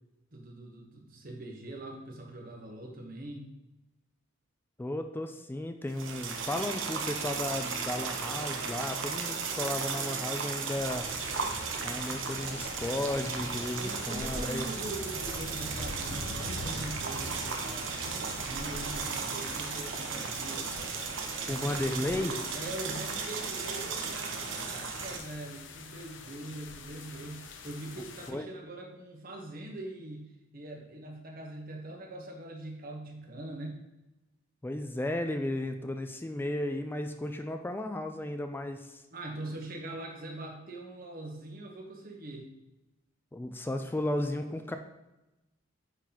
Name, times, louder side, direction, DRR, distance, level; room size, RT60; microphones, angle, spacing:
voice 1, 0.3-3.5 13.8-18.1 18.4-20.7 21.4-33.8 39.1-42.5, right 1 dB, 50° right, 1 dB, 1.1 m, -42 dB
voice 2, 4.8-11.1 11.8-14.7 21.5-22.3 28.3-28.5 34.6-39.0 43.3-44.8, left 1 dB, 10° left, 7 dB, 0.3 m, -34 dB
sound 1, 5.9-25.2, right 5 dB, 80° right, 0.8 m, -35 dB
sound 2, 10.7-28.3, left 3 dB, 70° left, 0.7 m, -45 dB
sound 3, 12.3-14.8 15.1-19.6 19.9-22.7 22.9-23.6 23.9-24.2 24.5-24.6 24.9-25.4, equal, 25° right, 1.0 m, -49 dB
9.0 x 4.0 x 2.9 m, 0.98 s
head